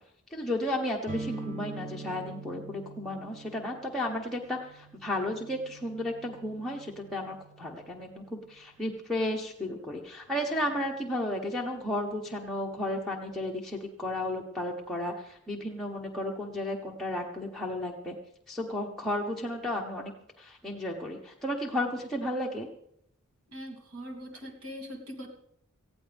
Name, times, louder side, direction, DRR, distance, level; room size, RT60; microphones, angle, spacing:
voice 1, 0.3-18.1 18.5-20.1 20.4-22.7, left 1 dB, ahead, -3 dB, 1.2 m, -33 dB
sound 1, 1.1-8.7, right 3 dB, 35° right, 1.2 m, -44 dB
voice 2, 23.5-25.3, equal, 80° right, 0 dB, 3.0 m, -41 dB
19.0 x 15.5 x 3.5 m, 0.72 s
head